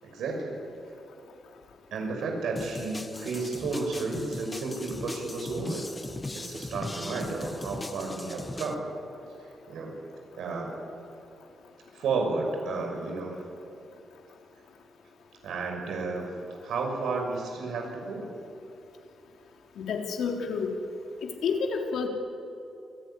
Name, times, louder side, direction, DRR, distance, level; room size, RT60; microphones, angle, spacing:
voice 1, 0.0-0.6 1.9-5.8 6.3-8.9 9.4-10.0 10.3-10.8 11.9-13.4 15.4-16.3 16.6-18.3, right 3 dB, 85° right, 1 dB, 6.2 m, -32 dB
sound 1, 2.6-8.7, left 2 dB, 15° left, 1.2 m, -39 dB
voice 2, 19.8-20.7 21.2-22.1, left 5 dB, 75° left, 2 dB, 3.7 m, -29 dB
28.5 x 20.0 x 10.0 m, 2.9 s
wide cardioid pair, 180°, 0 cm